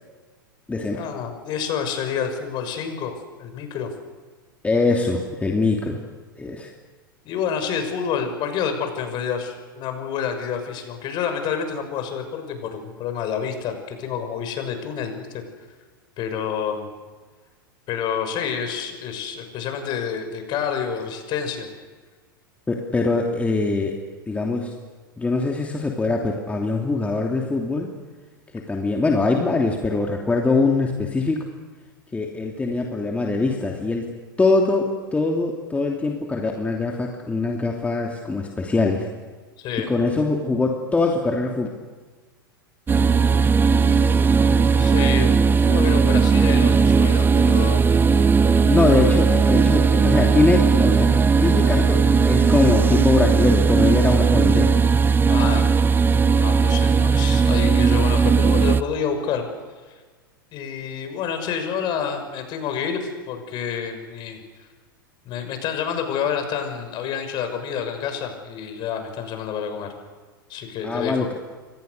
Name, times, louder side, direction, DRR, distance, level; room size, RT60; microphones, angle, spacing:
voice 1, 0.9-3.1 3.4-3.9 7.2-15.4 16.2-16.9 17.9-21.7 39.6-39.9 44.8-45.3 45.7-47.9 55.3-55.6 56.3-59.5 60.5-64.4 65.2-69.9 70.5-71.3, left 7 dB, 40° left, 7 dB, 6.2 m, -28 dB
voice 2, 4.6-6.0 6.4-6.7 22.7-24.0 24.3-24.7 25.2-27.9 28.5-31.4 32.1-34.1 34.4-39.1 39.9-41.7 48.7-54.7 70.8-71.3, left 3 dB, 10° left, 1 dB, 2.9 m, -22 dB
sound 1, 42.9-58.8, right 5 dB, 20° right, 1.0 m, -17 dB
29.5 x 25.5 x 6.7 m, 1.4 s
hypercardioid pair, 95°, 12 cm